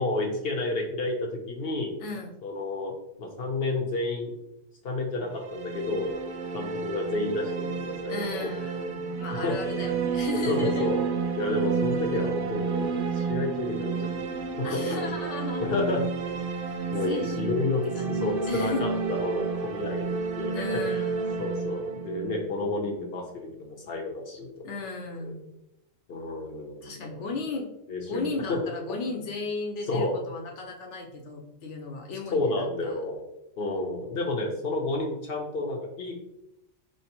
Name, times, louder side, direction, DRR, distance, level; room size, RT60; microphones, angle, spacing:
voice 1, 0.0-1.9 2.4-4.3 4.8-6.2 6.5-8.5 9.3-9.6 10.5-11.1 11.3-14.1 14.6-15.2 15.6-16.1 16.9-20.1 20.4-21.0 21.4-24.5 25.2-25.3 26.1-27.2 27.9-28.6 29.9-30.2 32.3-33.2 33.6-36.2, left 2 dB, 55° left, 1 dB, 1.0 m, -30 dB
voice 2, 2.0-2.4 8.1-10.9 14.6-15.7 17.1-17.7 17.9-18.2 18.5-18.8 20.5-21.6 24.6-25.5 26.8-27.7 28.1-33.0, left 4 dB, 75° left, 2 dB, 1.1 m, -35 dB
sound 1, 5.3-23.2, right 5 dB, 60° right, 0.6 m, -31 dB
4.4 x 3.0 x 2.9 m, 0.85 s
omnidirectional pair, 1.3 m